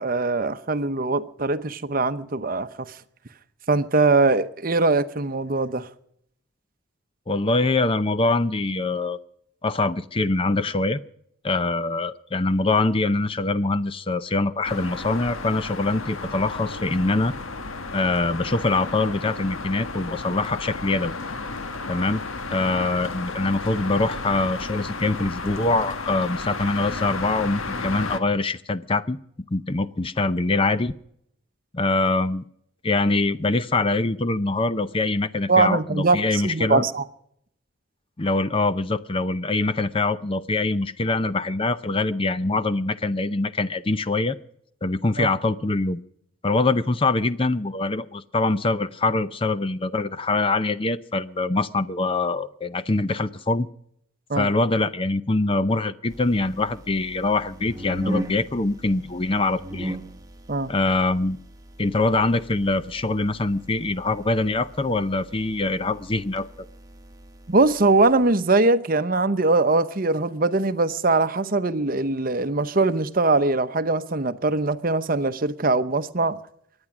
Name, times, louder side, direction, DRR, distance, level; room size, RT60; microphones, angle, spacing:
voice 1, 0.0-3.0 3.7-5.9 35.5-37.0 45.2-45.3 54.3-54.5 60.5-60.7 67.5-76.4, right 3 dB, 45° right, 0.8 m, -22 dB
voice 2, 7.3-9.2 9.6-11.0 11.4-17.3 17.9-21.1 21.9-22.2 22.5-29.2 29.5-30.9 31.7-32.4 32.8-36.9 38.2-44.4 44.8-46.0 46.4-53.7 54.4-60.0 60.7-61.4 61.8-66.5, left 2 dB, 25° left, 0.6 m, -24 dB
sound 1, 14.6-28.2, left 3 dB, 85° left, 1.4 m, -33 dB
sound 2, 56.1-68.3, right 1 dB, 15° right, 1.3 m, -38 dB
24.0 x 9.8 x 6.1 m
head